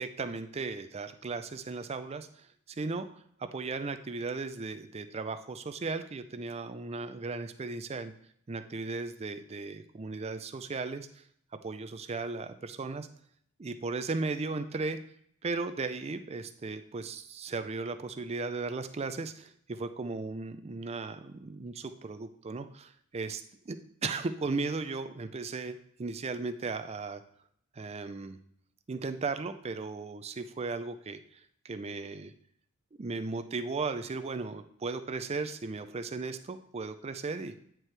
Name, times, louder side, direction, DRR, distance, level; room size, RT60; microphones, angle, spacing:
voice 1, 0.0-3.2 3.5-8.1 8.5-11.2 11.6-13.1 13.6-15.0 15.4-23.8 24.0-27.2 27.7-28.4 28.9-32.3 33.0-37.5, right 3 dB, 30° right, 9 dB, 0.4 m, -36 dB
9.1 x 4.5 x 3.3 m, 0.66 s
head